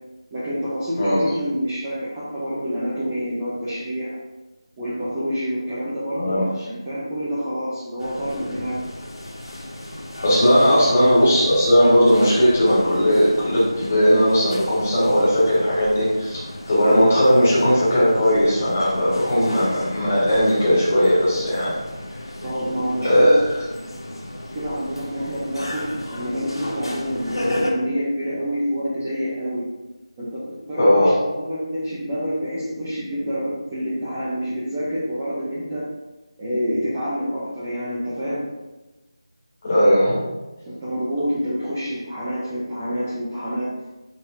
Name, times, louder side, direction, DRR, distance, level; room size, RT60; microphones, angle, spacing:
voice 1, 0.3-4.2 4.8-8.8 22.4-23.4 24.5-29.7 30.2-35.9 36.4-38.5 40.7-43.7, equal, 10° right, -11 dB, 0.6 m, -27 dB
voice 2, 6.1-6.4 10.2-16.4 16.7-21.7 23.0-23.5 30.8-31.2 39.6-40.2, equal, 20° left, -9 dB, 1.7 m, -17 dB
sound 1, 8.0-27.7, left 1 dB, 70° left, 1.5 m, -34 dB
7.0 x 5.2 x 2.7 m, 1.1 s
figure-of-eight pair, 180°, 3 cm